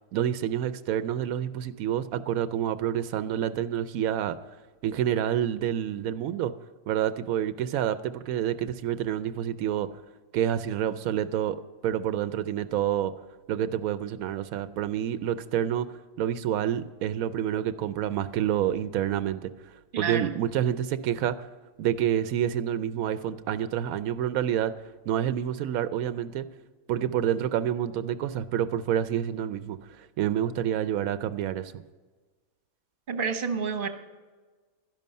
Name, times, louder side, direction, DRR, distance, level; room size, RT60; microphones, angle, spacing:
voice 1, 0.1-4.4 4.8-6.5 6.9-9.9 10.3-13.1 13.5-15.9 16.2-21.5 21.8-24.7 25.1-26.5 26.9-31.7, right 10 dB, 85° right, 13 dB, 1.0 m, -28 dB
voice 2, 19.9-20.4 33.1-33.9, right 5 dB, 40° right, 7 dB, 1.1 m, -29 dB
12.5 x 11.0 x 5.4 m, 1.4 s
omnidirectional pair, 1.4 m